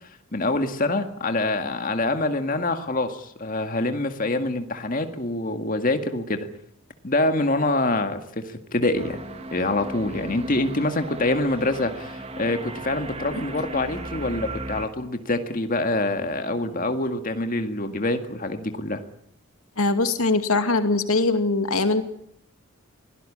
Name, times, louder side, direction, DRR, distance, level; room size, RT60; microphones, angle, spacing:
voice 1, 0.3-6.5 7.0-9.2 9.5-19.0, left 2 dB, 40° left, 7 dB, 2.0 m, -25 dB
sound 1, 8.9-14.9, right 1 dB, 30° right, 2.0 m, -36 dB
voice 2, 19.8-22.0, left 3 dB, 90° left, 8 dB, 2.4 m, -22 dB
24.0 x 17.5 x 8.8 m, 0.69 s
head